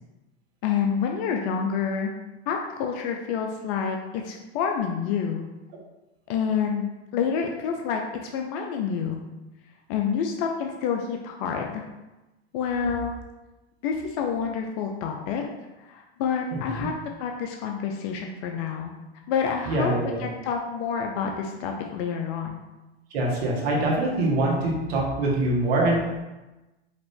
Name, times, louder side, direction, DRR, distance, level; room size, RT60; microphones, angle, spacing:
voice 1, 0.6-2.1 2.5-5.4 6.3-6.9 7.1-9.2 9.9-11.8 12.5-13.2 13.8-15.4 15.8-16.9 17.2-18.9 19.3-22.6, left 6 dB, 50° left, 2 dB, 0.6 m, -28 dB
voice 2, 19.7-20.2 23.1-26.1, right 2 dB, 65° right, -2 dB, 1.4 m, -24 dB
4.9 x 2.6 x 3.5 m, 1.1 s
hypercardioid pair, 105°, 33 cm